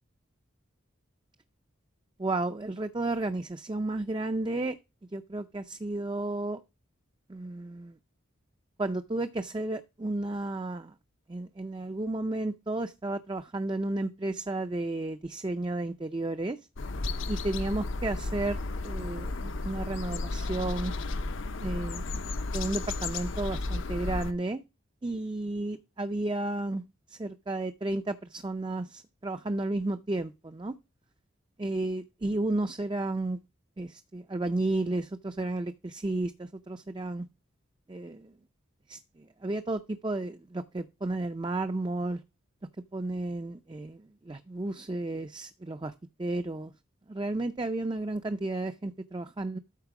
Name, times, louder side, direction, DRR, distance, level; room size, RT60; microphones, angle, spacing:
voice 1, 2.2-4.8 5.1-6.6 7.3-8.0 8.8-10.9 11.3-16.6 17.3-20.9 21.6-22.0 22.5-24.6 25.0-26.8 27.1-30.7 31.6-33.4 33.8-37.3 37.9-38.3 38.9-42.2 42.9-45.9 46.2-46.7 47.1-49.6, right 2 dB, 20° right, 0.4 m, -32 dB
sound 1, 16.8-24.3, left 3 dB, 65° left, 0.7 m, -33 dB
13.0 x 4.4 x 4.7 m
head